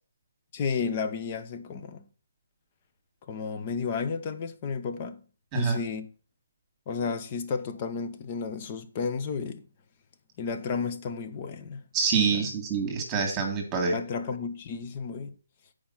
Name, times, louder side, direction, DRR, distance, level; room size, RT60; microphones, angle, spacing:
voice 1, 0.5-2.0 3.3-5.2 5.5-6.1 6.9-9.6 10.4-11.8 12.3-12.5 13.9-15.3, left 5 dB, 35° left, 1.0 m, -32 dB
voice 2, 11.9-14.0, right 5 dB, 20° right, 1.9 m, -26 dB
8.8 x 5.1 x 5.6 m
figure-of-eight pair, 150°, 0 cm